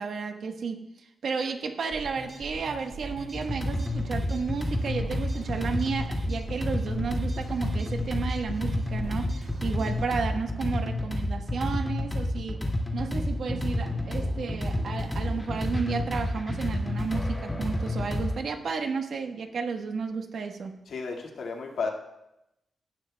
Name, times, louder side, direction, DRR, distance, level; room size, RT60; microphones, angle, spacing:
voice 1, 0.0-12.6 12.9-20.7, right 5 dB, 65° right, 5 dB, 1.1 m, -32 dB
sound 1, 1.9-10.0, right 2 dB, 40° right, 1.9 m, -41 dB
sound 2, 3.3-18.4, left 1 dB, 15° left, 2.1 m, -30 dB
voice 2, 20.9-21.9, left 4 dB, 85° left, 1 dB, 1.8 m, -32 dB
17.0 x 12.0 x 2.2 m, 0.88 s
wide cardioid pair, 140°, 0 cm